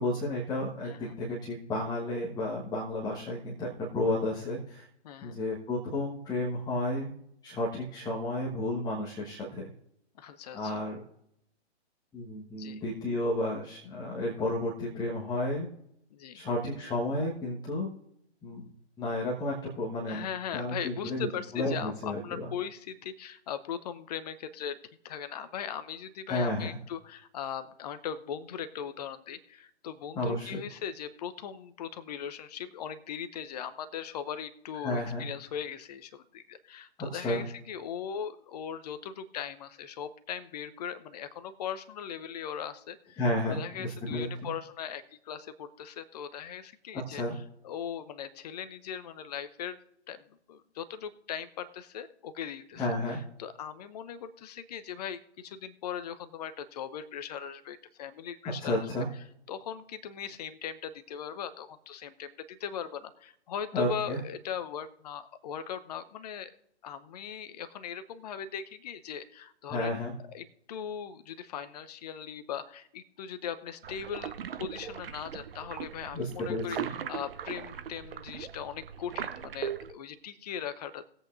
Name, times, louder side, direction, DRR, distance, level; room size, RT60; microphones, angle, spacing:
voice 1, 0.0-4.9 5.2-7.1 7.4-9.7 10.5-11.0 12.1-15.7 16.3-17.9 18.4-18.7 19.0-20.3 20.5-21.3 21.5-22.5 26.3-26.8 30.1-30.6 34.8-35.2 37.1-37.4 43.2-44.5 46.9-47.3 52.8-53.2 58.6-59.1 63.7-64.2 69.7-70.1 76.1-76.9, left 1 dB, 10° left, -4 dB, 1.4 m, -32 dB
voice 2, 0.8-1.2 5.0-5.4 10.2-10.8 12.5-12.8 16.1-16.4 20.1-24.8 25.0-43.2 43.5-49.8 50.1-58.9 59.5-66.5 66.8-70.0 70.3-81.0, left 8 dB, 35° left, 12 dB, 0.8 m, -39 dB
sound 1, 73.8-79.9, right 9 dB, 55° right, 0.7 m, -39 dB
20.0 x 8.1 x 2.6 m, 0.76 s
figure-of-eight pair, 125°, 34 cm